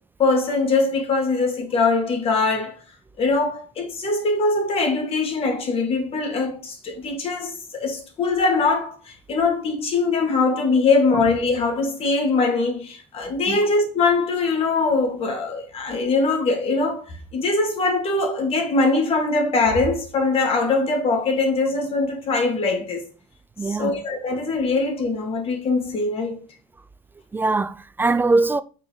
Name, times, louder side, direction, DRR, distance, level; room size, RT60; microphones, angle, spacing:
voice 1, 0.2-2.7 3.2-17.0 17.3-23.0 23.6-26.4, left 3 dB, 40° left, 2.6 m, -22 dB
voice 2, 23.6-23.9 27.3-28.6, right 3 dB, 15° right, 0.4 m, -21 dB
5.8 x 4.5 x 5.8 m
supercardioid pair, 115°, 15 cm